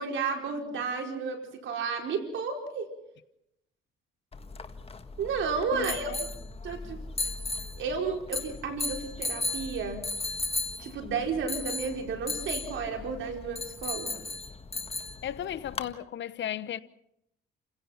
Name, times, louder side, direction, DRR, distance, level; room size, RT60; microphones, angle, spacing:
voice 1, 0.0-2.9 5.2-6.1 6.6-7.0 7.8-10.0 10.8-14.1, right 5 dB, 75° right, 4.7 m, -32 dB
sound 1, 4.3-15.9, left 3 dB, 30° left, 1.7 m, -36 dB
voice 2, 5.7-6.2 15.2-16.8, left 10 dB, 65° left, 1.0 m, -35 dB
29.0 x 16.5 x 5.8 m
cardioid pair, 90°, 20 cm